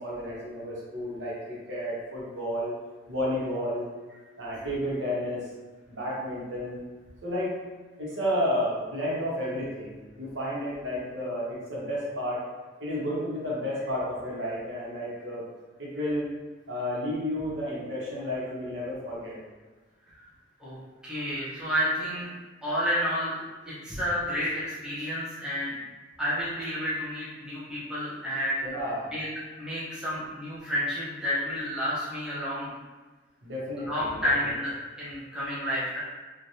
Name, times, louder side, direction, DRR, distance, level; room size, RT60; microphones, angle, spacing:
voice 1, 0.0-2.7 3.1-3.8 4.4-5.4 5.9-6.8 7.2-7.6 8.0-12.4 12.8-15.5 15.8-16.3 16.7-19.3 28.6-29.1 33.4-34.5, equal, 70° right, -6 dB, 0.9 m, -31 dB
voice 2, 21.0-22.3 22.6-23.3 23.7-25.8 26.2-28.6 29.1-29.3 29.6-32.7 33.9-34.7 35.0-36.0, equal, 5° right, -9 dB, 0.6 m, -30 dB
3.2 x 2.2 x 2.6 m, 1.3 s
head